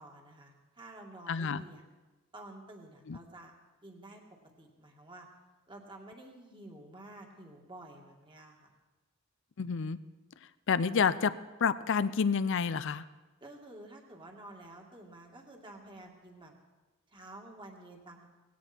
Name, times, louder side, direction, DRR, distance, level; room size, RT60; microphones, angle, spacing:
voice 1, 0.0-1.8 2.3-3.5 3.8-4.2 4.6-5.3 5.7-8.7 13.4-16.5 17.1-18.3, right 1 dB, 25° right, 1 dB, 2.3 m, -50 dB
voice 2, 1.3-1.6 3.1-3.2 9.6-10.0 10.7-11.3 11.6-13.0, left 6 dB, 60° left, 14 dB, 0.5 m, -29 dB
18.0 x 17.0 x 4.5 m, 1.2 s
head